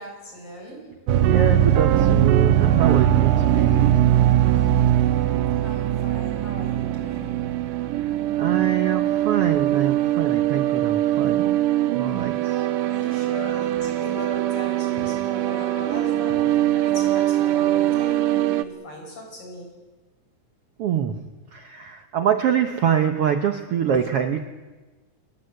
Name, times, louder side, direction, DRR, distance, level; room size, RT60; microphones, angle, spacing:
voice 1, 0.0-1.1 5.6-7.5 12.9-19.8, equal, 45° left, 1 dB, 7.9 m, -39 dB
sound 1, 1.1-18.6, right 12 dB, 85° right, 2.5 m, -21 dB
voice 2, 1.2-4.1 7.9-11.5 11.9-13.7 20.8-24.4, right 8 dB, 65° right, 6 dB, 1.6 m, -25 dB
28.5 x 18.0 x 8.0 m, 1.2 s
omnidirectional pair, 3.6 m